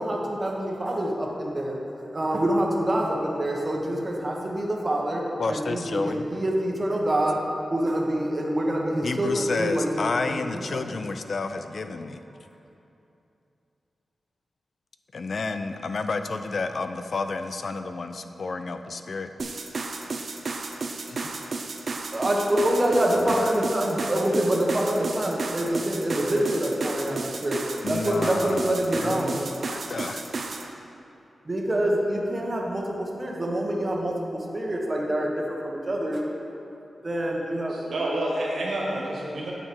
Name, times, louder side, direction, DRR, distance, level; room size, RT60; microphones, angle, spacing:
voice 1, 0.0-1.8 2.1-7.4 7.7-10.2 10.5-10.9 22.1-27.6 27.9-29.6 31.4-36.2 37.0-37.8, right 1 dB, 30° right, -1 dB, 1.2 m, -26 dB
voice 2, 5.4-6.2 9.0-12.2 15.1-19.3 21.1-21.3 23.1-23.5 27.8-30.2, left 3 dB, 55° left, 8 dB, 0.4 m, -30 dB
sound 1, 19.4-30.7, right 3 dB, 55° right, 0.6 m, -33 dB
voice 3, 37.7-39.5, right 1 dB, 90° right, -4 dB, 1.9 m, -29 dB
8.9 x 6.7 x 4.6 m, 2.8 s
wide cardioid pair, 90°, 0 cm